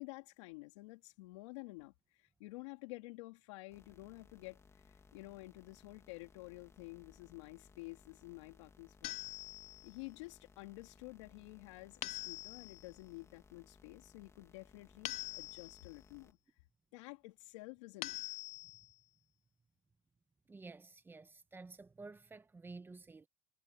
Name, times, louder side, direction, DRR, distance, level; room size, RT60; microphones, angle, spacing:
voice 1, 0.0-4.6 4.8-9.2 9.8-16.4 16.9-18.2, left 23 dB, 80° left, 3.6 m, -51 dB
sound 1, 3.7-16.3, left 4 dB, 20° left, 2.6 m, -64 dB
sound 2, 9.0-10.0 12.0-12.9 15.1-16.0 18.0-18.9, left 17 dB, 50° left, 0.6 m, -44 dB
voice 2, 20.5-23.3, right 3 dB, 15° right, 1.3 m, -52 dB
supercardioid pair, 125°, 15 cm